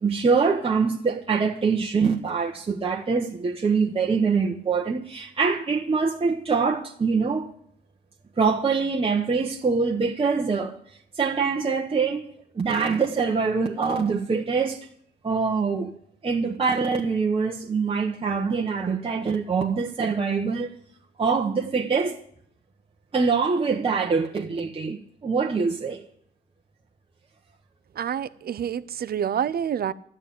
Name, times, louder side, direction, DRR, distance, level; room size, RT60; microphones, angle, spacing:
voice 1, 0.0-7.5 8.4-10.8 11.1-12.3 12.5-14.8 15.2-15.9 16.2-20.7 21.2-22.2 23.1-26.0, right 5 dB, 30° right, 1.2 m, -24 dB
voice 2, 27.9-29.9, right 8 dB, 50° right, 0.7 m, -27 dB
12.5 x 9.8 x 8.7 m
cardioid pair, 90°, 20 cm